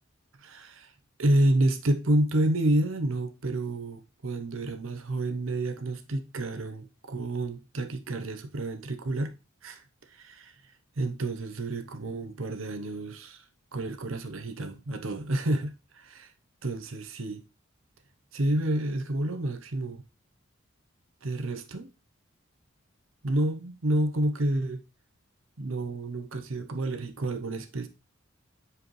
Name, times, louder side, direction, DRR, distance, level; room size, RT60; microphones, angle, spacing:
voice 1, 0.4-0.9 1.2-9.4 9.6-9.8 10.1-10.5 11.0-13.4 13.7-16.3 16.6-17.4 18.3-20.0 21.2-21.9 23.2-24.8 25.6-27.9, right 1 dB, 75° right, 0.9 m, -29 dB
7.5 x 4.9 x 3.2 m
head